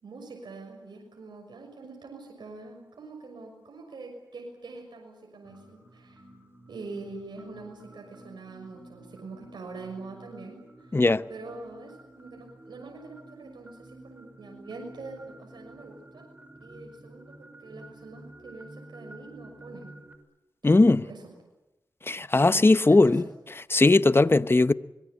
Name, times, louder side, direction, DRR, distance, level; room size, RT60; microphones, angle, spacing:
voice 1, 0.0-6.2 6.7-11.0 11.3-16.3 16.6-19.9 20.7-21.3 22.5-23.2, right 3 dB, 80° right, 6.3 m, -44 dB
sound 1, 5.4-20.2, right 1 dB, 20° right, 5.7 m, -51 dB
voice 2, 10.9-11.2 20.6-21.1 22.1-23.2 23.7-24.7, left 2 dB, 30° left, 0.9 m, -19 dB
25.0 x 22.0 x 8.5 m
cardioid pair, 50°, 8 cm